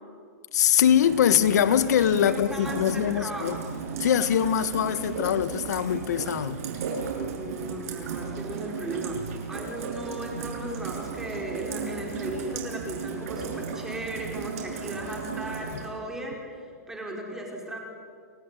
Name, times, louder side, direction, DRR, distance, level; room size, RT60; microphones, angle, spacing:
voice 1, 0.5-3.6 4.0-6.6, left 9 dB, 75° left, 1.5 m, -23 dB
Rain, 0.9-15.9, right 6 dB, 60° right, 7.6 m, -35 dB
voice 2, 2.2-3.7 7.1-17.8, right 1 dB, 5° right, 5.4 m, -36 dB
29.0 x 18.5 x 10.0 m
hypercardioid pair, 150°, 9 cm